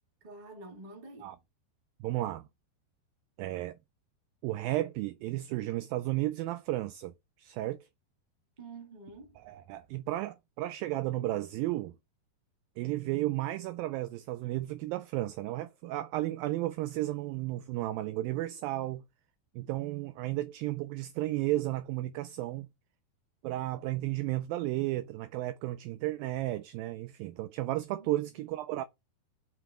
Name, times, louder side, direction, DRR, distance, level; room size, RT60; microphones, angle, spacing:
voice 1, 0.2-1.3 8.6-9.4, right 3 dB, 40° right, 0.6 m, -48 dB
voice 2, 2.0-2.5 3.4-3.8 4.4-7.1 7.4-7.9 9.4-11.9 12.8-19.0 19.6-22.7 23.4-28.8, right 16 dB, 90° right, 2.0 m, -33 dB
5.9 x 5.6 x 3.6 m
omnidirectional pair, 4.6 m